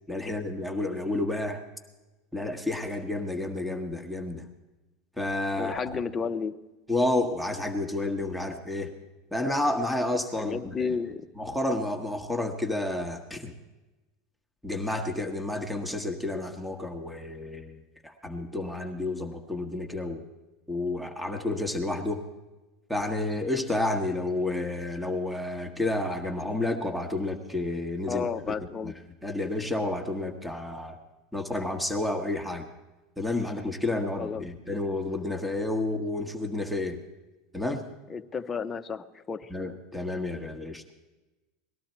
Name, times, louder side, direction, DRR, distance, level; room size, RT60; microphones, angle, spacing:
voice 1, 0.1-1.6 2.3-4.4 5.2-5.8 6.9-8.9 9.3-10.7 11.4-13.5 14.6-20.2 20.7-22.2 22.9-28.5 28.8-28.9 29.2-31.0 31.3-32.7 33.2-37.0 37.5-37.9 39.5-40.8, left 2 dB, ahead, 5 dB, 1.2 m, -30 dB
voice 2, 5.6-6.6 10.4-11.3 28.1-28.9 34.2-34.4 38.1-39.5, left 5 dB, 25° left, 8 dB, 0.7 m, -32 dB
19.0 x 12.0 x 4.4 m, 1.1 s
supercardioid pair, 105°, 0 cm